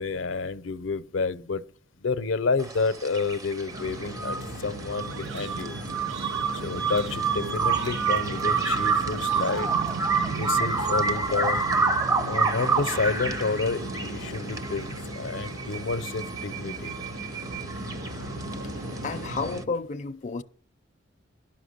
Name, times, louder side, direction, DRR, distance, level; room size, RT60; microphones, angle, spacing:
voice 1, 0.0-1.6 2.0-5.8 6.5-9.7 10.3-11.7 12.2-16.9, left 4 dB, 80° left, 0.6 m, -30 dB
sound 1, 2.6-19.6, right 5 dB, 20° right, 0.6 m, -29 dB
sound 2, 3.7-19.6, right 1 dB, 90° right, 2.7 m, -37 dB
Galaxian Arcade Game, 5.1-11.2, right 7 dB, 65° right, 0.4 m, -39 dB
voice 2, 19.0-20.4, left 4 dB, 40° left, 0.4 m, -31 dB
11.5 x 5.9 x 6.5 m
head